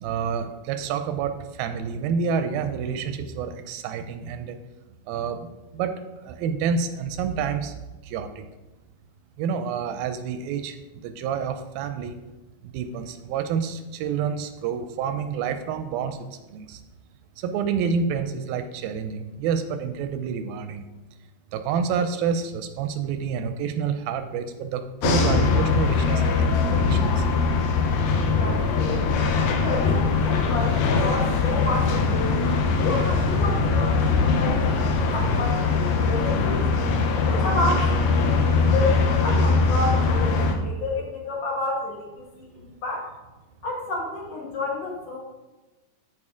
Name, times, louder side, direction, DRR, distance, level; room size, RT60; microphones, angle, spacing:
voice 1, 0.0-4.6 5.1-5.5 5.7-5.9 6.2-7.8 8.0-8.4 9.4-12.2 12.6-16.2 16.5-16.8 17.4-20.8 21.5-27.3, right 6 dB, 80° right, 8 dB, 2.3 m, -28 dB
sound 1, 25.0-40.6, left 4 dB, 80° left, 2.7 m, -21 dB
voice 2, 28.3-32.3 32.8-36.6 37.3-43.1 43.6-45.2, left 2 dB, 55° left, -2 dB, 2.1 m, -30 dB
14.0 x 4.7 x 3.7 m, 1.1 s
omnidirectional pair, 4.4 m